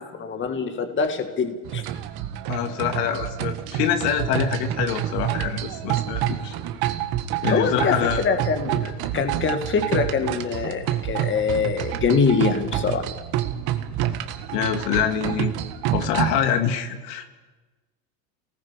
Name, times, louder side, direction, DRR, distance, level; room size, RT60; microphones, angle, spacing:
voice 1, 0.2-1.8 7.5-13.1, left 5 dB, 25° left, 7 dB, 1.9 m, -24 dB
sound 1, 1.6-16.5, right 12 dB, 50° right, 1.8 m, -28 dB
voice 2, 2.5-6.6 7.4-8.2 14.5-15.5 15.9-17.4, left 8 dB, 80° left, 7 dB, 2.6 m, -25 dB
29.5 x 19.0 x 5.2 m, 1.2 s
supercardioid pair, 135°, 49 cm